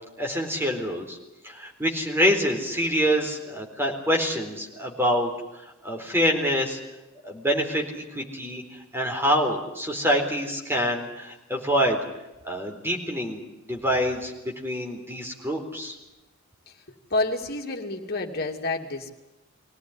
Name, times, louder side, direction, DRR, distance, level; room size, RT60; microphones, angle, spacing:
voice 1, 0.2-1.2 1.4-5.3 5.8-6.8 7.2-7.8 8.1-8.6 8.9-12.0 12.4-13.4 13.7-15.9, equal, 10° right, 2 dB, 4.1 m, -26 dB
voice 2, 17.1-19.1, left 2 dB, 45° left, 3 dB, 2.7 m, -28 dB
23.5 x 17.5 x 9.9 m, 1.0 s
head